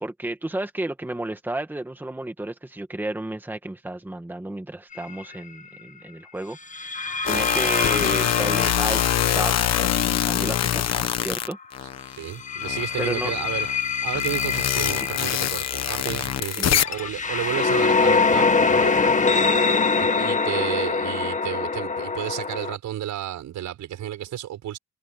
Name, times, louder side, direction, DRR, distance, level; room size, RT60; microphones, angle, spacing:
voice 1, 0.0-9.0 9.4-11.6 13.0-13.3 14.8-15.1 16.6-16.7, right 1 dB, 5° right, 1.8 m, -32 dB
sound 1, 4.9-5.2 6.7-11.5 12.3-22.7, left 4 dB, 25° left, 1.8 m, -24 dB
sound 2, 7.3-12.2 12.6-17.1, left 11 dB, 55° left, 1.2 m, -24 dB
voice 2, 12.2-13.7 14.0-19.0 20.0-24.8, right 11 dB, 75° right, 5.9 m, -32 dB
cardioid pair, 150°, 31 cm